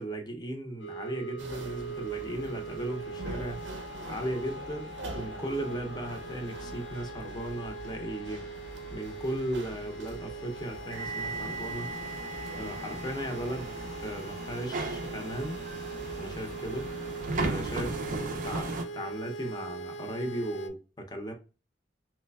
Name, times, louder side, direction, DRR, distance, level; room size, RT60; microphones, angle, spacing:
voice 1, 0.0-3.6 4.1-8.4 8.9-11.9 12.6-13.7 14.0-15.6 16.2-16.9 17.4-21.3, right 1 dB, 20° left, 0.6 m, -36 dB
sound 1, 0.8-20.7, right 3 dB, 85° left, 0.5 m, -41 dB
sound 2, 1.4-18.1, right 2 dB, 85° right, 0.6 m, -45 dB
sound 3, 10.9-18.9, right 3 dB, 45° right, 0.4 m, -36 dB
3.2 x 3.1 x 2.2 m
head